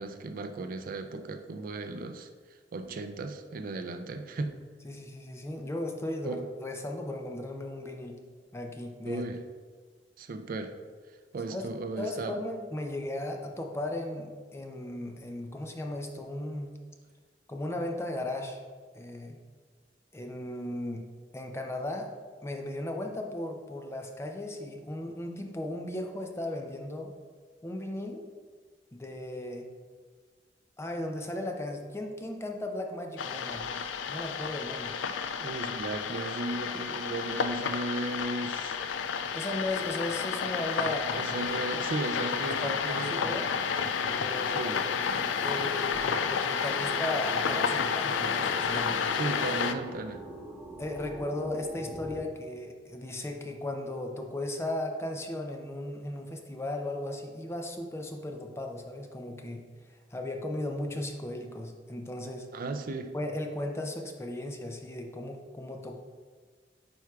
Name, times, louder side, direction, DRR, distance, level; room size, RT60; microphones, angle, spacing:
voice 1, 0.0-4.6 6.2-6.4 9.1-9.4 10.2-10.8 11.3-12.4 35.4-38.8 41.1-43.4 44.5-44.8 49.1-50.2 62.5-63.1, right 2 dB, 50° right, 7 dB, 0.4 m, -36 dB
voice 2, 4.8-8.1 8.5-9.2 11.5-11.7 12.0-16.7 17.5-18.6 18.9-19.4 20.1-21.0 21.3-22.1 22.4-27.1 27.6-28.2 28.9-29.7 30.8-33.7 34.1-35.0 39.3-41.3 42.6-43.5 44.0-44.8 45.4-49.0 50.8-59.6 59.9-62.5 63.1-66.0, left 1 dB, 15° left, 3 dB, 0.5 m, -36 dB
sound 1, 33.2-49.7, left 6 dB, 85° left, 0.4 m, -31 dB
sound 2, 42.7-52.3, right 1 dB, 15° right, 0.8 m, -43 dB
9.1 x 4.5 x 2.3 m, 1.5 s
head